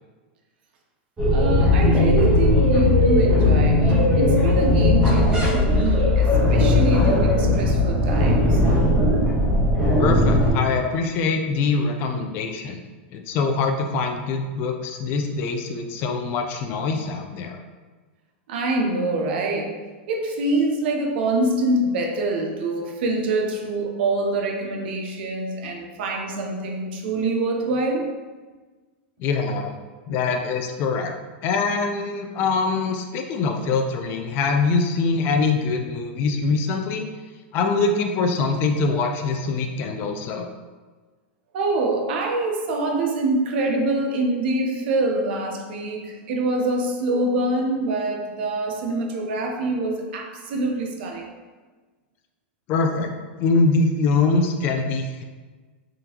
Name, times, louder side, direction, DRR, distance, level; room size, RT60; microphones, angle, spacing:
sound 1, 1.2-10.5, left 2 dB, 15° right, 1.3 m, -18 dB
voice 1, 1.3-8.6 18.5-19.7 20.1-28.1 41.5-51.3, right 2 dB, 60° right, 2 dB, 0.7 m, -25 dB
voice 2, 10.0-12.8 13.1-17.6 29.2-29.7 30.1-31.1 31.4-37.1 37.5-40.5 52.7-53.1 53.4-55.2, left 4 dB, 35° left, 4 dB, 0.4 m, -23 dB
3.7 x 3.4 x 2.9 m, 1.3 s
supercardioid pair, 155°, 6 cm